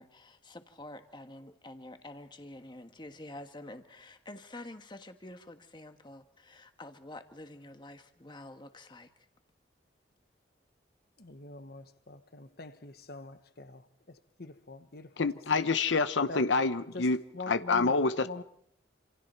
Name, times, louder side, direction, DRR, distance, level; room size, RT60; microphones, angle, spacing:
voice 1, 0.0-9.1, left 1 dB, 25° left, 1.5 m, -48 dB
voice 2, 11.2-15.7 16.3-16.6 16.9-18.4, left 3 dB, 55° left, 1.2 m, -45 dB
voice 3, 15.2-17.2 17.5-18.4, left 4 dB, 85° left, 0.8 m, -27 dB
27.5 x 27.5 x 4.5 m
head